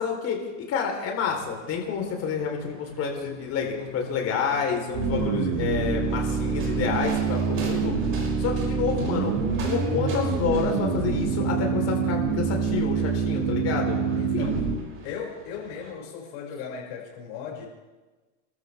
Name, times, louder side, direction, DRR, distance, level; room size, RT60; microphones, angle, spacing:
voice 1, 0.0-8.0 8.4-9.3 9.7-14.6, left 6 dB, 40° left, 2 dB, 4.1 m, -29 dB
sound 1, 1.3-15.9, right 3 dB, 30° right, 5.1 m, -43 dB
sound 2, 4.9-14.8, right 5 dB, 70° right, 2.9 m, -26 dB
voice 2, 14.2-14.6 15.0-17.7, left 7 dB, 55° left, -2 dB, 6.5 m, -37 dB
29.5 x 13.0 x 3.6 m, 1.2 s
supercardioid pair, 130°, 40 cm